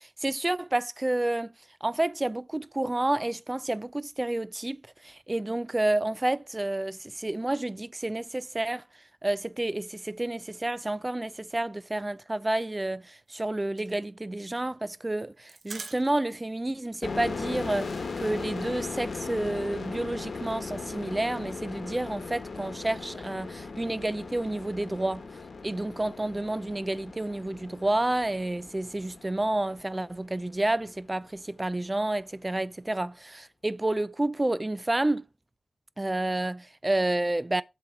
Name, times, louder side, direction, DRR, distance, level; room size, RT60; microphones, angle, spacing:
voice 1, 0.0-1.5 1.8-8.8 9.2-25.2 25.6-35.3 36.0-37.6, right 1 dB, 20° right, 0.4 m, -30 dB
sound 1, 13.1-16.5 16.7-16.8 17.1-17.3 17.6-18.7, right 5 dB, 75° right, 1.0 m, -47 dB
sound 2, 17.0-30.5, left 4 dB, 60° left, 1.3 m, -38 dB
7.6 x 4.5 x 5.7 m
wide cardioid pair, 100°, 0 cm